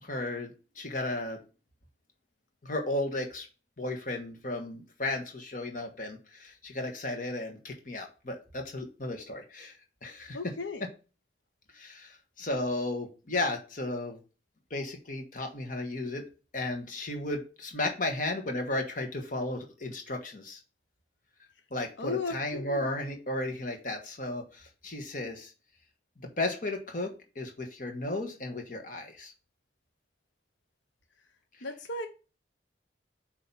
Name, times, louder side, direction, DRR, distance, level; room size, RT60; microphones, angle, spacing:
voice 1, 0.0-1.4 2.6-3.5 3.8-9.8 10.0-10.4 11.7-14.2 14.7-16.2 16.5-20.6 21.7-25.5 26.2-29.3, left 2 dB, 45° left, 4 dB, 1.4 m, -34 dB
voice 2, 10.3-10.9 22.0-22.9 31.6-32.1, left 3 dB, 85° left, 6 dB, 0.7 m, -35 dB
8.6 x 3.0 x 5.5 m, 0.33 s
head